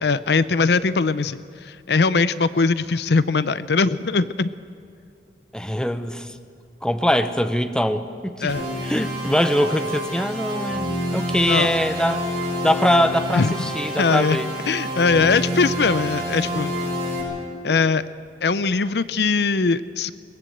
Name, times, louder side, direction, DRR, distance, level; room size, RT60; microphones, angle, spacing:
voice 1, 0.0-4.5 8.4-8.7 11.5-11.7 13.3-13.5 14.0-14.4 14.7-16.7 17.6-18.0 18.4-20.1, left 4 dB, 70° left, 15 dB, 0.6 m, -21 dB
voice 2, 5.5-6.3 6.8-8.5 8.8-12.2 12.6-14.5, equal, 5° left, 9 dB, 0.8 m, -22 dB
sound 1, 8.5-17.2, equal, 25° right, 7.0 m, -28 dB
22.0 x 20.0 x 7.9 m, 2.3 s
head